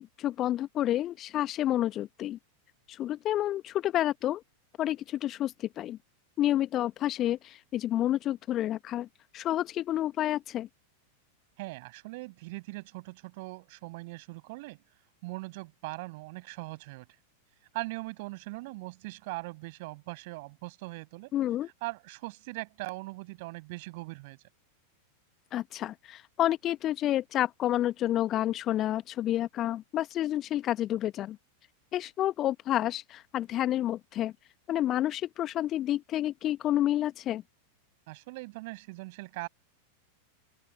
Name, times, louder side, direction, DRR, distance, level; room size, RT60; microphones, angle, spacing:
voice 1, 0.0-2.4 2.9-4.4 4.8-6.0 6.4-9.1 9.3-10.7 21.3-21.7 25.5-31.4 31.9-34.3 34.7-37.4, left 13 dB, 30° left, 1.7 m, -29 dB
voice 2, 11.6-14.8 15.2-17.1 17.7-21.3 21.8-24.4 38.1-39.5, right 24 dB, 50° right, 7.3 m, -40 dB
open air
figure-of-eight pair, 90°, 0 cm